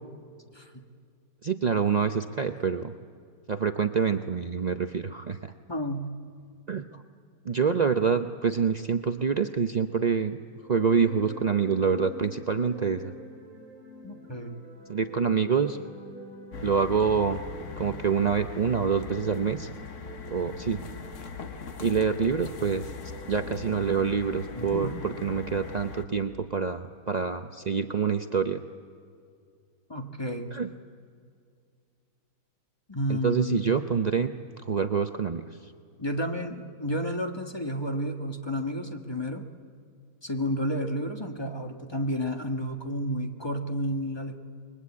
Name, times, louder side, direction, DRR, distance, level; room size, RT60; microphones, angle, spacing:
voice 1, 1.4-2.9 3.5-5.5 6.7-7.0 7.4-10.4 10.7-13.1 14.9-15.8 16.6-17.4 17.8-19.7 20.3-20.8 21.8-22.9 23.3-28.6 30.5-30.7 33.1-34.3 34.6-35.4, right 6 dB, 65° right, 7 dB, 0.4 m, -26 dB
voice 2, 5.7-6.1 14.0-14.6 24.6-25.3 29.9-30.5 32.9-33.7 36.0-39.4 40.2-44.4, equal, 15° left, 4 dB, 1.4 m, -31 dB
sound 1, 10.5-26.3, equal, 50° right, 4.6 m, -47 dB
sound 2, 16.5-26.0, left 6 dB, 50° left, 1.4 m, -41 dB
28.5 x 22.0 x 8.5 m, 2.2 s
omnidirectional pair, 1.9 m